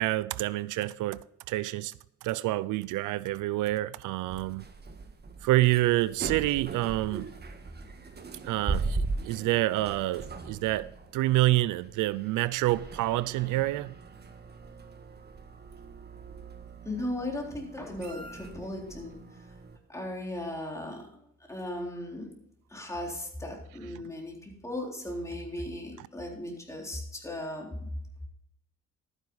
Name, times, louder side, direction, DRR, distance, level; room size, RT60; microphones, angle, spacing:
voice 1, 0.0-1.9 2.2-4.6 5.4-7.3 8.4-13.9 23.8-23.9 26.0-26.1, right 17 dB, 85° right, 0.5 m, -28 dB
sound 1, 4.3-19.8, right 3 dB, 35° right, 1.5 m, -39 dB
voice 2, 16.9-19.2 19.9-21.0 21.5-22.3 22.7-24.4 24.6-27.7, left 1 dB, 10° left, 3.7 m, -36 dB
12.5 x 9.8 x 4.0 m
cardioid pair, 90°, 30 cm